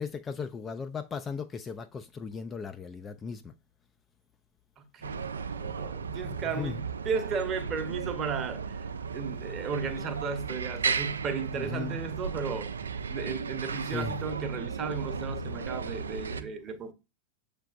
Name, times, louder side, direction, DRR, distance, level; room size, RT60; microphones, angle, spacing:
voice 1, 0.0-3.4 6.2-6.7 11.5-11.9 13.9-14.1, left 5 dB, 20° left, 0.3 m, -37 dB
voice 2, 4.8-16.9, right 5 dB, 30° right, 0.8 m, -35 dB
sound 1, 5.0-16.4, right 5 dB, 70° right, 0.3 m, -35 dB
6.6 x 3.3 x 2.4 m
figure-of-eight pair, 90°, 0 cm